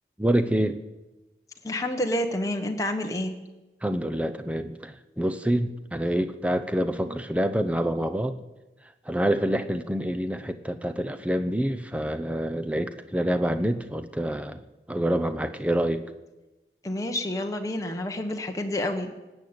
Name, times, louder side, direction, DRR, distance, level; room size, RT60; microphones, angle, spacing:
voice 1, 0.2-0.8 3.8-8.4 9.1-14.6 14.9-16.0, right 1 dB, 5° right, 9 dB, 0.7 m, -27 dB
voice 2, 1.6-3.4 16.8-19.1, left 1 dB, 20° left, 3 dB, 1.1 m, -29 dB
18.5 x 8.1 x 8.8 m, 1.1 s
head